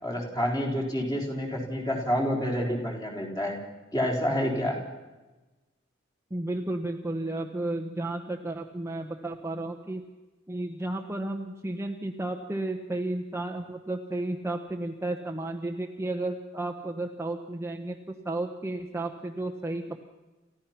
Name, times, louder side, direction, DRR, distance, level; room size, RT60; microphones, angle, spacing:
voice 1, 0.0-3.6 3.9-4.8, equal, 20° left, 0 dB, 4.1 m, -28 dB
voice 2, 6.3-10.0 10.5-20.0, right 2 dB, 15° right, 3 dB, 1.0 m, -33 dB
29.5 x 15.0 x 5.9 m, 1.2 s
head